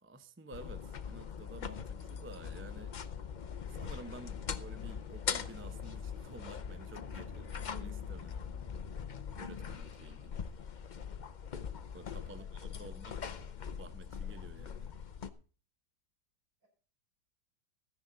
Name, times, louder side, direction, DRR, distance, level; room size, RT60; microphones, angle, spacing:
voice 1, 0.0-2.9 3.7-8.7 9.4-10.4 11.9-13.1 13.8-14.9, right 2 dB, 15° right, 0.4 m, -52 dB
sound 1, 0.5-15.3, left 7 dB, 55° left, 0.5 m, -41 dB
voice 2, 12.2-13.7 16.6-16.7, equal, 55° right, 6.9 m, -65 dB
14.0 x 10.0 x 4.0 m
omnidirectional pair, 1.8 m